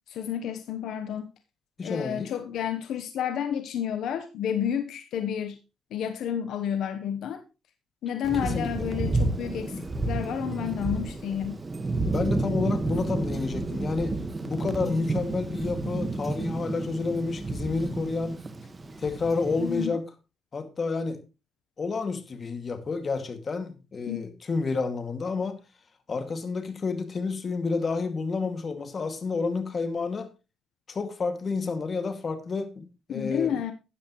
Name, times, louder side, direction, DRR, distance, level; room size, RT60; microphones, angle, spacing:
voice 1, 0.1-1.3 1.8-5.6 5.9-7.4 8.0-11.6 19.6-19.9 24.1-24.2 33.1-33.7, left 9 dB, 75° left, 0.9 m, -30 dB
voice 2, 1.8-2.3 8.4-8.7 9.7-9.9 10.1-10.3 12.1-18.4 19.0-20.1 20.5-21.2 21.8-25.6 26.1-30.3 30.9-33.6, left 4 dB, 40° left, 2.1 m, -30 dB
Thunder, 8.2-19.9, right 2 dB, 25° right, 1.4 m, -31 dB
13.0 x 9.9 x 3.1 m
cardioid pair, 90°, 0 cm